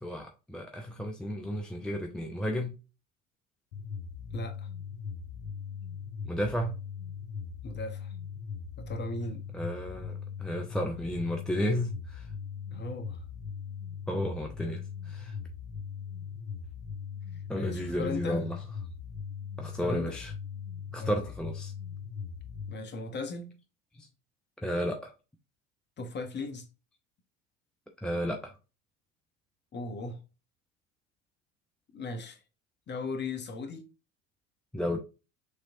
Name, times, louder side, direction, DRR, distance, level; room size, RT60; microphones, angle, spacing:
voice 1, 0.0-2.7 6.2-6.8 9.5-12.3 14.1-15.3 17.5-18.6 19.6-20.3 20.9-21.7 24.0-24.1 24.6-25.1 28.0-28.5 34.7-35.0, equal, ahead, 0.5 m, -33 dB
sound 1, 3.7-22.7, left 6 dB, 70° left, 1.0 m, -40 dB
voice 2, 4.3-4.7 7.6-8.1 8.8-9.5 12.7-13.2 17.5-18.5 19.6-20.2 21.0-21.1 22.7-23.6 26.0-26.7 29.7-30.2 31.9-32.4 32.9-33.9, left 3 dB, 25° left, 1.0 m, -37 dB
6.6 x 3.1 x 2.6 m
figure-of-eight pair, 70°, 39 cm